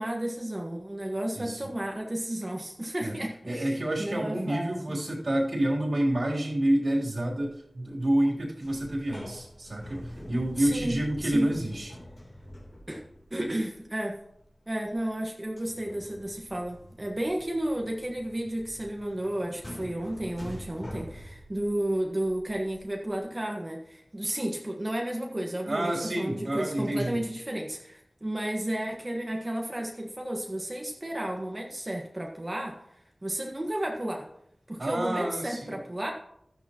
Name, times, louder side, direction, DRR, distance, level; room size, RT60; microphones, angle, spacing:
voice 1, 0.0-5.0 10.6-11.6 12.9-13.0 13.3-14.2 14.7-34.3 34.7-36.1, right 1 dB, 30° right, 0 dB, 1.5 m, -32 dB
voice 2, 3.5-12.0 25.7-27.2 34.8-35.8, right 1 dB, 65° right, -4 dB, 3.4 m, -28 dB
sound 1, 7.3-7.5 7.8-8.3 8.6-15.2 15.5-23.2, equal, 45° left, 3.3 m, -46 dB
13.0 x 10.5 x 3.0 m, 0.75 s
wide cardioid pair, 55°, 0 cm